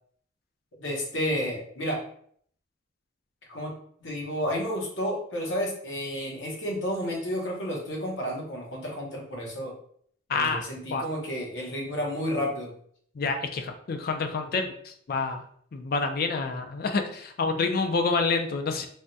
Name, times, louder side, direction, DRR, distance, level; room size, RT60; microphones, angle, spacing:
voice 1, 0.8-2.0 3.5-3.7 4.0-9.7 10.3-12.7, equal, 80° left, -2 dB, 1.0 m, -31 dB
voice 2, 10.3-10.6 10.9-11.0 13.1-15.4 15.7-18.9, left 4 dB, 50° left, 6 dB, 0.4 m, -28 dB
3.4 x 2.2 x 2.6 m, 0.62 s
head